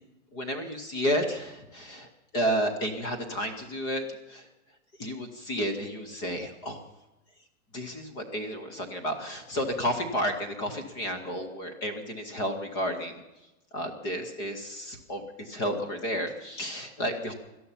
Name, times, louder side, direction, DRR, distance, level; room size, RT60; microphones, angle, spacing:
voice 1, 0.3-2.1 2.3-4.5 5.0-6.8 7.7-13.2 13.7-17.3, equal, 10° left, 6 dB, 0.5 m, -31 dB
18.0 x 12.5 x 5.6 m, 1.0 s
supercardioid pair, 165°, 43 cm